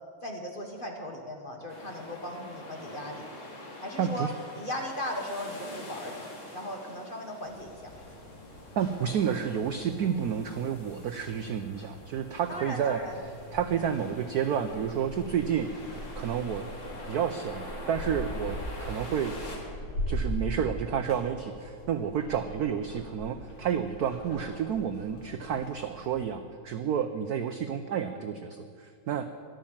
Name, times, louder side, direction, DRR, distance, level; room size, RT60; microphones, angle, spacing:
voice 1, 0.2-3.3 3.8-4.3 4.5-7.9 12.5-13.2, left 1 dB, 30° left, 2 dB, 1.2 m, -37 dB
sound 1, 1.7-19.6, left 1 dB, 60° left, 3.1 m, -45 dB
voice 2, 4.0-4.3 8.8-13.0 13.5-15.7 16.1-16.7 17.1-19.4 20.1-29.2, right 8 dB, 75° right, 8 dB, 0.9 m, -30 dB
sound 2, 7.4-26.2, equal, 80° left, 3.0 m, -41 dB
13.0 x 11.5 x 7.3 m, 2.3 s
omnidirectional pair, 2.3 m